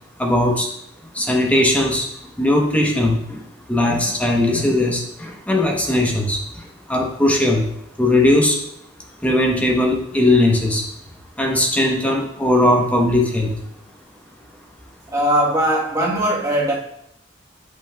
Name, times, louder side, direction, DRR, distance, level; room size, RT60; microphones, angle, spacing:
voice 1, 0.2-0.7 1.1-2.1 2.4-3.4 3.7-7.7 8.0-8.6 9.2-10.9 11.4-13.5, left 1 dB, 10° left, 0 dB, 1.0 m, -18 dB
voice 2, 15.1-16.7, right 1 dB, 20° right, -4 dB, 1.3 m, -19 dB
8.1 x 5.4 x 2.3 m, 0.74 s
head